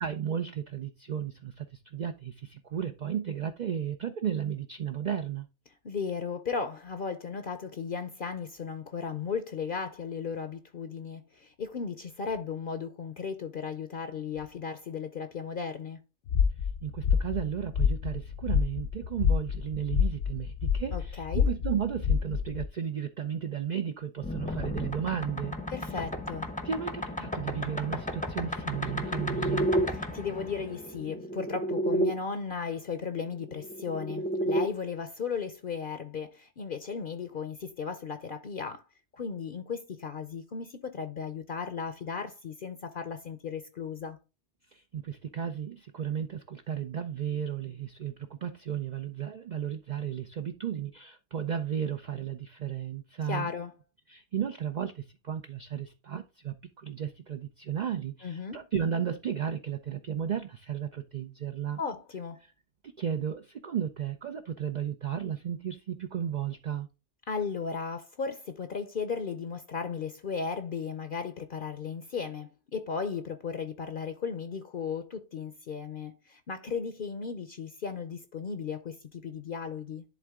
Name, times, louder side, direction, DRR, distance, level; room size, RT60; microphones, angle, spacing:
voice 1, 0.0-5.5 16.8-25.6 25.8-26.0 26.6-29.7 44.7-53.5 54.1-61.8 63.0-66.9, right 8 dB, 50° right, 0.6 m, -34 dB
voice 2, 5.8-16.0 20.9-21.5 25.7-26.5 30.1-38.8 39.1-44.2 53.3-53.7 58.2-58.6 61.8-62.4 67.3-80.0, left 5 dB, 55° left, 0.8 m, -36 dB
sound 1, 16.3-22.7, left 7 dB, 85° left, 0.9 m, -28 dB
sound 2, 24.2-32.1 33.4-34.7, equal, 10° left, 0.7 m, -32 dB
11.0 x 3.6 x 3.6 m
omnidirectional pair, 1.2 m